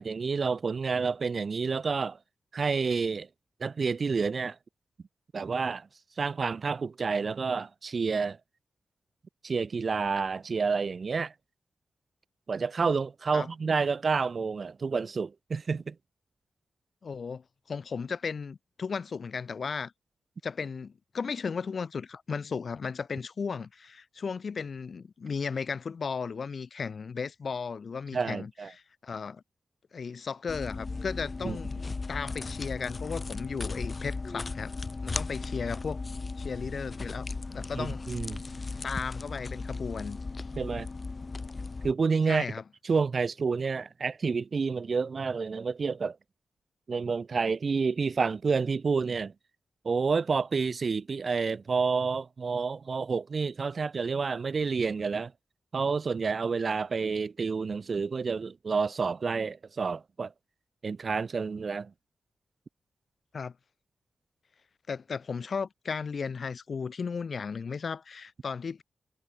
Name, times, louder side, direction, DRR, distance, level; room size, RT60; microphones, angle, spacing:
voice 1, 0.0-2.2 2.5-3.3 3.6-4.5 5.3-5.9 6.2-8.4 9.4-11.3 12.5-15.9 28.1-28.7 31.4-31.6 37.8-38.4 40.5-40.9 41.8-42.5 42.8-46.2 46.9-49.3 49.8-55.3 55.7-60.3 60.8-61.9, right 5 dB, 50° right, 1.3 m, -29 dB
voice 2, 17.0-19.9 20.4-29.4 29.9-31.8 32.1-34.7 35.0-36.0 36.4-38.0 38.8-40.2 42.3-42.6 63.3-63.5 64.9-68.8, left 5 dB, 55° left, 5.1 m, -35 dB
sound 1, 30.5-41.9, left 3 dB, 35° left, 1.3 m, -36 dB
wide cardioid pair, 95°, 0 cm